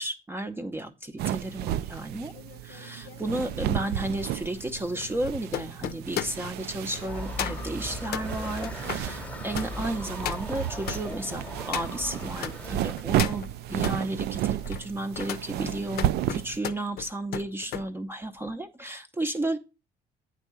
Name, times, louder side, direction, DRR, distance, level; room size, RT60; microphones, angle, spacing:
voice 1, 0.0-2.3 2.6-19.6, right 1 dB, 15° right, 6 dB, 0.6 m, -33 dB
sound 1, 1.2-16.6, right 12 dB, 70° right, 0.4 m, -33 dB
sound 2, 1.9-12.6 12.9-14.0 14.5-17.9 18.2-18.5, left 10 dB, 65° left, 0.6 m, -37 dB
Motor vehicle (road) / Siren, 7.1-12.9, left 1 dB, 10° left, 1.0 m, -38 dB
9.1 x 3.6 x 6.8 m, 0.31 s
cardioid pair, 110°, 17 cm